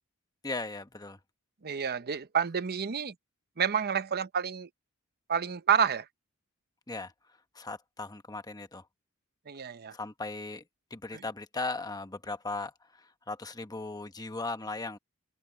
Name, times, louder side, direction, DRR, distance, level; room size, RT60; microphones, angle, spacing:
voice 1, 0.4-1.2 6.9-7.1 7.5-8.8 9.9-10.6 10.9-15.0, left 3 dB, 20° left, 1.0 m, -37 dB
voice 2, 1.6-3.1 3.6-4.7 5.3-6.1 9.5-9.9 11.1-11.2, right 7 dB, 45° right, 0.8 m, -29 dB
head